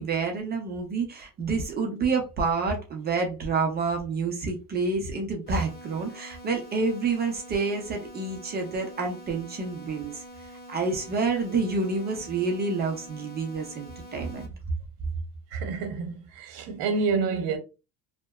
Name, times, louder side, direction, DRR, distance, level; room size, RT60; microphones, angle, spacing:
voice 1, 0.0-10.2 10.7-14.5, right 4 dB, 25° right, 0.5 m, -28 dB
sound 1, 5.5-14.5, equal, 55° left, 1.5 m, -46 dB
voice 2, 15.5-17.6, right 4 dB, 70° right, 0.9 m, -28 dB
2.7 x 2.1 x 2.2 m
cardioid pair, 135°, 40 cm